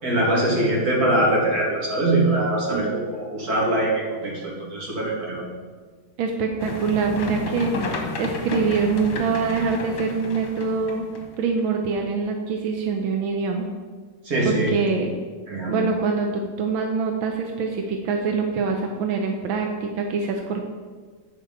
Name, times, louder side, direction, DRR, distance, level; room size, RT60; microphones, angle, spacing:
voice 1, 0.0-5.5 14.3-14.7 15.5-15.8, right 1 dB, 50° right, -3 dB, 2.7 m, -22 dB
voice 2, 6.2-11.0 11.4-13.7 14.4-15.1 15.7-20.6, right 5 dB, 85° right, 3 dB, 1.6 m, -24 dB
sound 1, 6.6-11.6, left 4 dB, 80° left, 2.1 m, -32 dB
9.7 x 5.0 x 7.1 m, 1.5 s
omnidirectional pair, 2.1 m